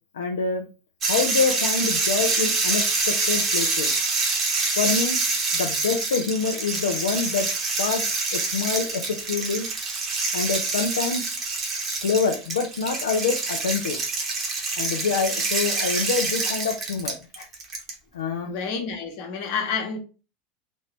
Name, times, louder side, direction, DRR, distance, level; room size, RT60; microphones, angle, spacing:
voice 1, 0.1-0.7 1.1-3.9 4.8-5.2 5.5-7.5 7.8-8.0 8.3-9.7 10.3-11.2 12.0-14.0 14.8-17.1 18.1-18.5, left 5 dB, 75° left, 0.4 m, -26 dB
sound 1, 1.0-17.9, right 3 dB, 35° right, 1.1 m, -26 dB
voice 2, 18.4-20.0, left 5 dB, 60° left, 1.1 m, -29 dB
3.1 x 2.8 x 3.3 m
hypercardioid pair, 85°, 0 cm